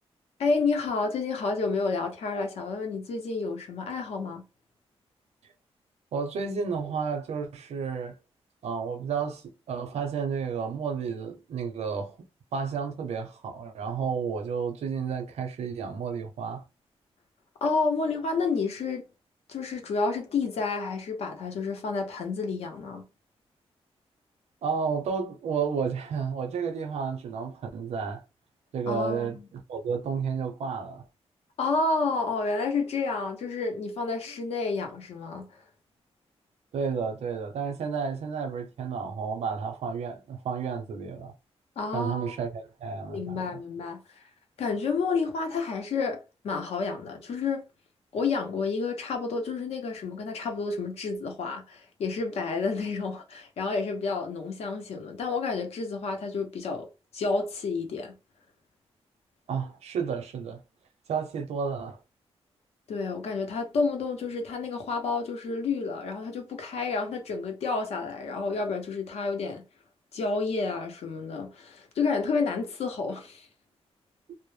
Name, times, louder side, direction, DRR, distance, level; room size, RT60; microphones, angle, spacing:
voice 1, 0.4-4.4 17.6-19.1 19.5-23.0 28.9-29.4 31.6-35.6 41.8-42.4 43.1-44.3 44.6-47.6 48.1-58.1 62.9-69.6 70.1-73.5, left 4 dB, 75° left, 0.6 m, -30 dB
voice 2, 6.1-8.2 8.6-12.2 12.5-16.6 24.6-28.2 28.7-31.0 36.7-41.3 41.9-43.6 59.5-60.6 61.1-62.0, right 6 dB, 85° right, 0.6 m, -31 dB
2.1 x 2.0 x 3.1 m
wide cardioid pair, 175°, 11 cm